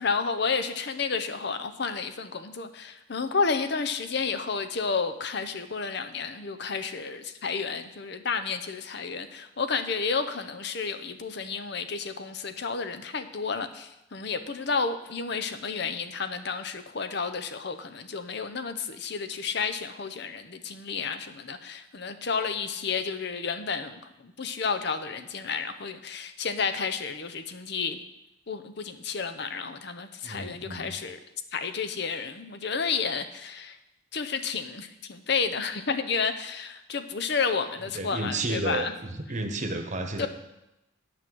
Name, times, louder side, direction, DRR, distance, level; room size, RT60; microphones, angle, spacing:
voice 1, 0.0-28.0 28.5-31.2 31.5-33.8 34.1-38.9 40.2-40.3, left 5 dB, 55° left, 9 dB, 0.7 m, -31 dB
voice 2, 30.2-30.9 37.9-38.9 39.1-40.3, right 2 dB, 35° right, 4 dB, 1.1 m, -31 dB
8.7 x 6.0 x 7.8 m, 0.91 s
head